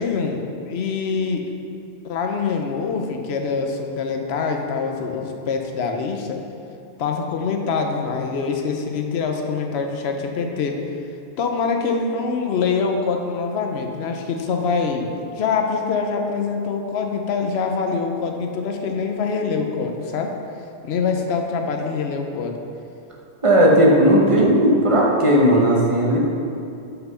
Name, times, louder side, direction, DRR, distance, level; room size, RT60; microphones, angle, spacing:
voice 1, 0.0-1.4 2.0-6.4 7.0-10.8 11.4-20.3 20.8-22.6 24.4-24.7, left 5 dB, 70° left, 3 dB, 1.0 m, -24 dB
voice 2, 23.4-26.2, equal, 30° right, -2 dB, 1.0 m, -15 dB
5.8 x 5.8 x 5.5 m, 2.6 s
omnidirectional pair, 1.1 m